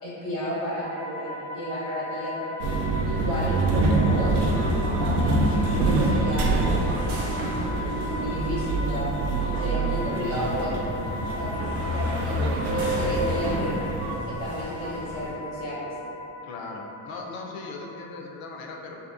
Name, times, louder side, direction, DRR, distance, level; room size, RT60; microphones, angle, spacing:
voice 1, 0.0-2.5 3.0-4.5 5.2-6.9 7.9-9.1 9.5-10.8 11.2-13.8 14.3-15.9, equal, 85° left, -8 dB, 1.1 m, -33 dB
sound 1, 0.8-18.1, left 3 dB, 30° right, 0.5 m, -37 dB
sound 2, 2.6-14.1, right 2 dB, 75° right, 0.5 m, -25 dB
sound 3, 4.1-15.3, right 1 dB, 50° right, 0.8 m, -37 dB
voice 2, 12.7-13.2 16.4-19.0, left 3 dB, 55° left, 0 dB, 0.5 m, -39 dB
2.7 x 2.2 x 2.3 m, 2.8 s
hypercardioid pair, 70°, 46 cm